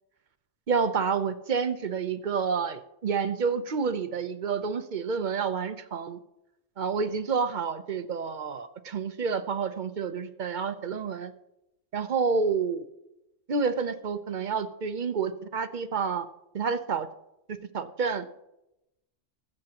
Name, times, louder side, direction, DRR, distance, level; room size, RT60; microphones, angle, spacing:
voice 1, 0.7-6.2 6.8-11.3 11.9-12.9 13.5-16.3 16.5-17.1 17.5-18.3, right 5 dB, 50° right, 11 dB, 0.7 m, -29 dB
22.0 x 7.5 x 2.9 m, 0.88 s
omnidirectional pair, 1.3 m